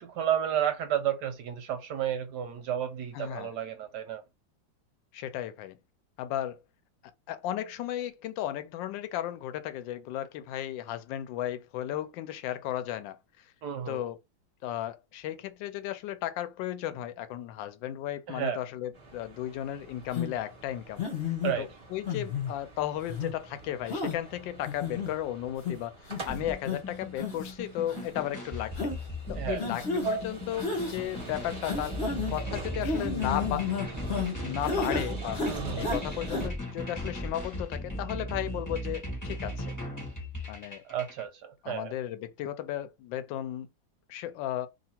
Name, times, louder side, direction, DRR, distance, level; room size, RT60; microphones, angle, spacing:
voice 1, 0.0-4.2 13.6-14.0 18.3-18.6 21.4-21.7 29.4-29.7 35.5-35.9 40.8-41.9, right 10 dB, 75° right, 1.1 m, -32 dB
voice 2, 3.1-3.5 5.1-5.8 6.2-6.6 7.3-13.4 13.9-14.2 14.6-28.9 29.3-32.0 32.3-33.9 34.3-35.4 35.8-39.7 40.5-40.8 41.6-43.7 44.1-44.7, left 12 dB, 80° left, 1.2 m, -35 dB
sound 1, 18.9-36.5, right 3 dB, 30° right, 0.6 m, -43 dB
sound 2, 20.1-20.3 21.0-21.5 22.1-22.5 23.1-23.3 23.9-24.2 24.6-25.1 25.6-25.7 26.1-26.3 26.7-26.8 27.2-27.5 27.9-28.0 28.8-29.0 29.6-30.1 30.6-31.0 31.6-32.4 32.8-34.3 34.6-35.1 35.3-36.0 36.3-36.4, left 4 dB, 45° left, 0.8 m, -31 dB
sound 3, 26.3-41.2, left 1 dB, 15° left, 0.8 m, -37 dB
2.8 x 2.7 x 4.3 m
omnidirectional pair, 2.1 m